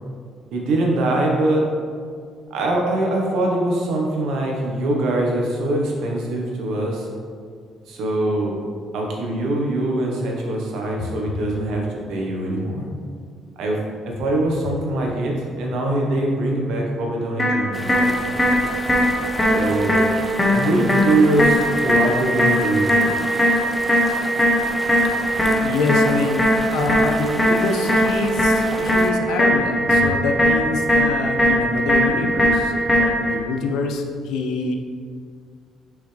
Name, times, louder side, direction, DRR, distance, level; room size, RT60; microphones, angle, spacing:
voice 1, 0.5-1.6 2.5-7.1 7.9-8.6 8.9-12.8 13.6-13.8 14.1-18.1 19.5-20.0 20.5-23.2, right 1 dB, 80° right, -1 dB, 1.3 m, -22 dB
sound 1, 17.4-33.4, equal, 15° left, 1.1 m, -20 dB
sound 2, 17.7-29.1, right 1 dB, 10° right, 0.6 m, -34 dB
voice 2, 25.6-34.7, left 4 dB, 85° left, 3 dB, 0.7 m, -26 dB
6.5 x 5.4 x 3.4 m, 2.1 s
cardioid pair, 125°, 0 cm